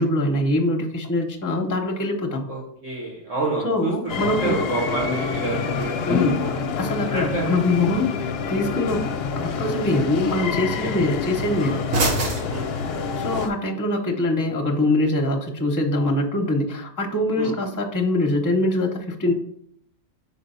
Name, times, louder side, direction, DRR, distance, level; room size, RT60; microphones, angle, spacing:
voice 1, 0.0-2.5 3.6-4.6 6.1-6.4 6.8-9.1 9.4-11.9 13.2-19.3, left 1 dB, 20° left, 3 dB, 0.7 m, -23 dB
voice 2, 2.5-3.9 4.2-6.5 7.0-7.5 10.8-10.9 12.5-13.1 17.4-17.5, right 3 dB, 60° right, -7 dB, 1.9 m, -29 dB
sound 1, 4.1-13.5, left 6 dB, 55° left, 0.7 m, -27 dB
sound 2, 5.5-13.5, right 2 dB, 75° right, 1.5 m, -33 dB
5.4 x 3.9 x 5.5 m, 0.70 s
omnidirectional pair, 1.4 m